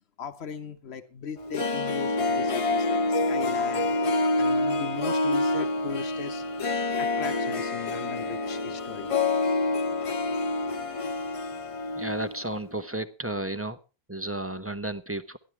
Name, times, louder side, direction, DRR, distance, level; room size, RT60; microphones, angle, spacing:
voice 1, 0.2-4.0 4.4-6.4 7.0-9.1, left 6 dB, 85° left, 10 dB, 1.3 m, -38 dB
Harp, 1.4-12.4 12.6-12.7, left 2 dB, 35° left, 0.7 m, -27 dB
voice 2, 12.0-13.8 14.1-15.4, right 1 dB, 15° right, 10 dB, 0.8 m, -32 dB
14.0 x 11.5 x 4.5 m, 0.32 s
omnidirectional pair, 1.1 m